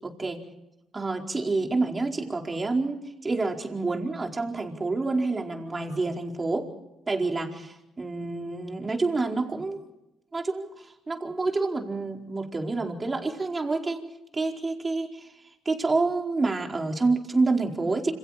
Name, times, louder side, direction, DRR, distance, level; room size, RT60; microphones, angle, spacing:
voice 1, 0.0-0.4 0.9-6.7 7.1-9.8 10.3-14.0 14.3-15.3 15.6-18.1, right 3 dB, 25° right, 2 dB, 4.6 m, -28 dB
29.0 x 28.0 x 4.4 m, 0.90 s
cardioid pair, 90°, 0 cm